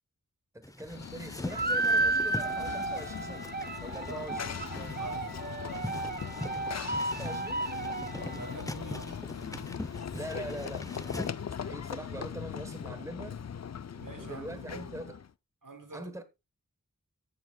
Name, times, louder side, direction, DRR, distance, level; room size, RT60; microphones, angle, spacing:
voice 1, 0.5-3.5 3.8-5.0 7.0-7.7 10.1-13.4 14.2-15.2 15.9-16.2, right 1 dB, 10° right, 1.1 m, -43 dB
sound 1, 0.6-11.3, left 1 dB, 10° left, 0.6 m, -42 dB
Run / Train, 0.9-15.3, left 7 dB, 55° left, 0.5 m, -40 dB
sound 2, 1.5-8.6, right 2 dB, 30° right, 0.7 m, -33 dB
voice 2, 4.9-5.5 8.1-9.8 13.9-14.9 15.6-16.2, right 3 dB, 70° right, 1.8 m, -46 dB
16.0 x 7.1 x 2.2 m
wide cardioid pair, 50°, 33 cm